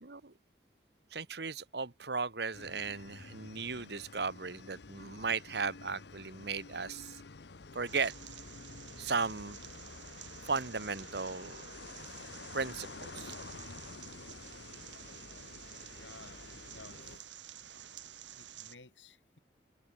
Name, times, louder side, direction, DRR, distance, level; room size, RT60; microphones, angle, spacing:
voice 1, 0.0-0.3 1.1-7.2 7.7-8.1 9.0-9.6 10.4-11.6 12.5-13.3, right 4 dB, 65° right, 1.4 m, -36 dB
sound 1, 2.5-17.2, left 4 dB, 70° left, 0.8 m, -50 dB
sound 2, 7.9-18.8, right 9 dB, 90° right, 7.4 m, -51 dB
voice 2, 15.8-17.3 18.4-19.4, left 3 dB, 90° left, 6.3 m, -56 dB
head